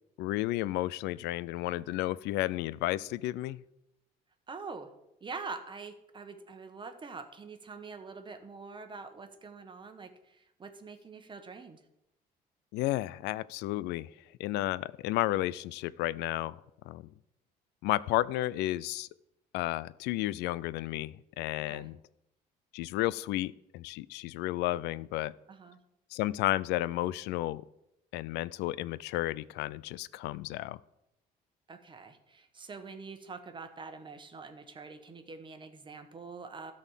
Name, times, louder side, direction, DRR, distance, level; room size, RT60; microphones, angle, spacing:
voice 1, 0.2-3.6 12.7-14.1 14.4-16.6 16.9-17.1 17.8-19.1 19.5-22.0 22.7-25.3 26.1-27.6 28.1-30.8, left 16 dB, 90° left, 20 dB, 0.4 m, -32 dB
voice 2, 4.5-4.9 5.2-11.8 21.7-21.9 25.5-25.8 31.7-36.7, right 4 dB, 30° right, 7 dB, 1.2 m, -45 dB
12.5 x 4.3 x 7.3 m, 0.86 s
cardioid pair, 110°, 17 cm